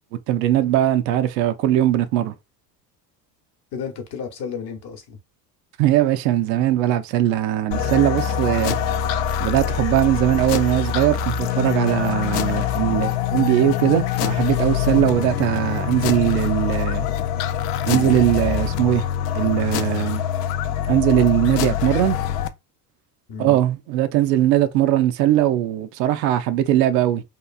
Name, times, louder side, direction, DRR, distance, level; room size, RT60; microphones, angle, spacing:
voice 1, 0.3-2.3 5.8-8.8 9.4-17.1 17.9-19.0 19.3-20.2 20.9-22.2 23.4-27.2, right 12 dB, 75° right, 0.6 m, -20 dB
voice 2, 3.7-5.2 21.8-22.1 23.3-23.6, left 6 dB, 50° left, 0.9 m, -33 dB
sound 1, 7.7-22.5, left 9 dB, 70° left, 0.5 m, -24 dB
2.9 x 2.4 x 2.3 m
hypercardioid pair, 75°, 49 cm